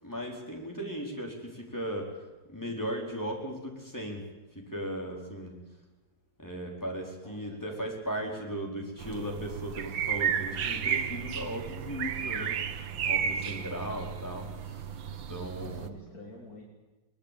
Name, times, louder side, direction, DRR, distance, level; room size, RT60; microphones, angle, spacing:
voice 1, 0.0-4.3 4.5-5.6 6.4-14.9 15.3-15.9, equal, 10° left, 0 dB, 4.7 m, -37 dB
voice 2, 7.2-7.9 15.6-16.7, left 2 dB, 55° left, -2 dB, 3.5 m, -48 dB
sound 1, 9.0-15.9, right 8 dB, 90° right, 1.9 m, -33 dB
22.5 x 19.5 x 8.6 m, 1.1 s
omnidirectional pair, 2.0 m